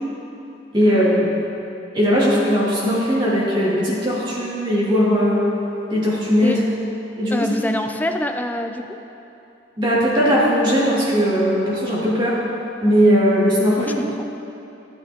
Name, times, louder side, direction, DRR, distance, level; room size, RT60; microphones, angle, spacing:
voice 1, 0.7-1.5 1.9-5.5 5.9-6.6 7.2-7.5 9.8-12.4 12.8-14.0, equal, 25° right, -8 dB, 2.4 m, -18 dB
voice 2, 7.3-9.0 13.8-14.1, left 1 dB, 10° left, 5 dB, 0.4 m, -25 dB
13.0 x 9.0 x 2.9 m, 2.9 s
head